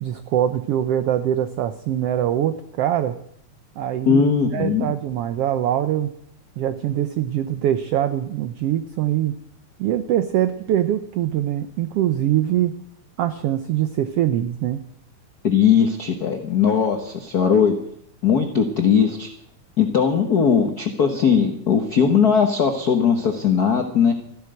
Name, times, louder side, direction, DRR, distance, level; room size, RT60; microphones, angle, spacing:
voice 1, 0.0-3.2 3.8-4.2 4.5-6.1 6.6-9.4 9.8-12.7 13.2-14.8, right 11 dB, 80° right, 11 dB, 1.3 m, -23 dB
voice 2, 4.1-4.9 15.4-17.8 18.2-19.3 19.8-24.1, left 7 dB, 75° left, 6 dB, 0.9 m, -19 dB
14.5 x 12.0 x 7.7 m, 0.68 s
omnidirectional pair, 3.6 m